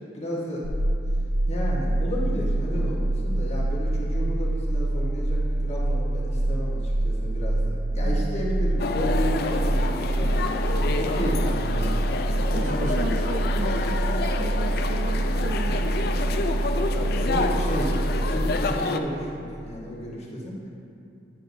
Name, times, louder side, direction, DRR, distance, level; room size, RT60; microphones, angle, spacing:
voice 1, 0.1-0.7 1.5-11.9 12.3-13.1 16.8-20.7, equal, 35° left, -5 dB, 1.3 m, -33 dB
sound 1, 0.6-18.3, right 1 dB, 90° right, 0.7 m, -25 dB
voice 2, 8.0-8.4 12.5-16.0, right 3 dB, 45° right, 8 dB, 0.3 m, -35 dB
sound 2, 8.8-19.0, left 3 dB, 55° left, 0.4 m, -29 dB
8.5 x 7.7 x 2.7 m, 2.5 s
head